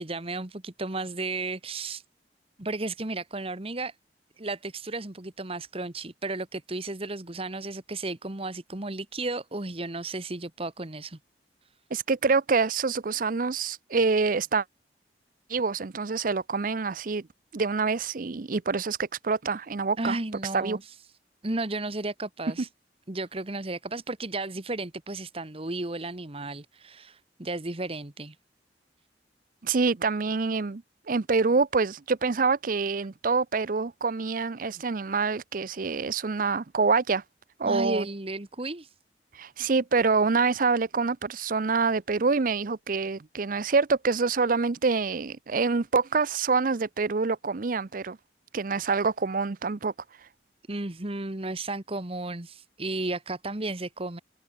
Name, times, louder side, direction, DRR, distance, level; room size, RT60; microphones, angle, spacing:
voice 1, 0.0-2.0 2.6-3.9 4.4-11.2 20.0-21.0 21.4-22.7 23.1-28.3 37.6-38.9 50.7-54.2, right 2 dB, 35° right, 1.5 m, -33 dB
voice 2, 11.9-14.6 15.5-17.3 17.5-20.2 20.5-20.8 29.6-37.2 37.6-38.1 39.3-48.2 48.5-49.9, right 4 dB, 50° right, 0.6 m, -26 dB
open air
head